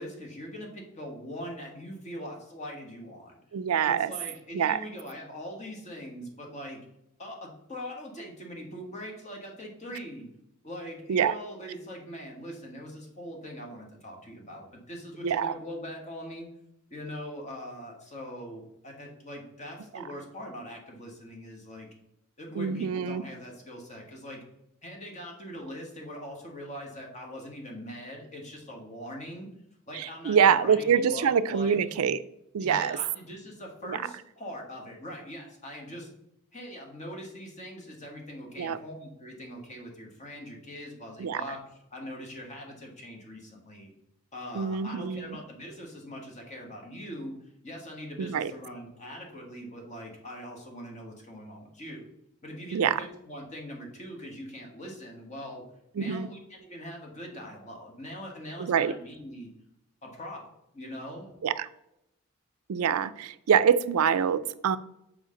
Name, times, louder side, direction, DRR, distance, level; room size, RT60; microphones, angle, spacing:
voice 1, 0.0-3.4 3.8-6.9 7.2-10.3 10.6-16.5 16.9-21.9 22.4-24.4 24.8-29.5 29.9-32.0 32.6-36.1 36.5-41.6 41.9-43.9 44.3-47.3 47.6-52.1 52.4-55.6 55.9-59.5 60.0-60.5 60.7-61.4, equal, 35° left, 1 dB, 1.4 m, -42 dB
voice 2, 3.5-4.1 4.5-4.8 11.1-11.3 15.2-15.5 22.6-23.2 29.9-32.2 32.5-33.0 33.8-34.0 38.6-38.8 41.2-41.4 44.5-45.4 48.2-48.5 52.7-53.0 56.0-56.3 58.6-58.9 61.4-61.7 62.7-64.8, right 7 dB, 80° right, 14 dB, 0.4 m, -25 dB
6.3 x 4.9 x 3.7 m, 0.82 s
head